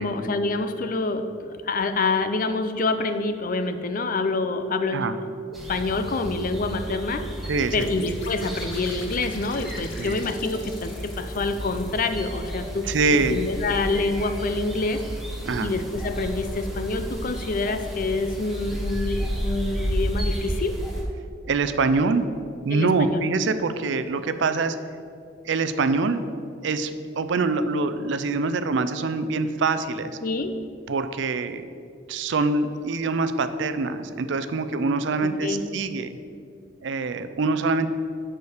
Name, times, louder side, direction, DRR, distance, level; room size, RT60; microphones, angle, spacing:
voice 1, 0.0-5.1 5.7-7.2 7.7-12.9 13.3-15.0 15.6-20.8 22.7-23.2 30.2-30.5 35.4-35.6, left 3 dB, 45° left, 9 dB, 0.5 m, -27 dB
sound 1, 5.5-21.0, equal, ahead, 1.3 m, -32 dB
voice 2, 7.4-7.9 10.0-10.2 12.9-13.4 15.5-15.7 21.4-22.3 22.6-24.8 25.4-26.2 26.6-30.2 30.9-31.6 32.1-36.2 36.8-37.9, right 3 dB, 70° right, 11 dB, 0.4 m, -24 dB
sound 2, 7.8-12.6, left 6 dB, 80° left, 0.8 m, -46 dB
6.9 x 5.0 x 6.5 m, 2.4 s
head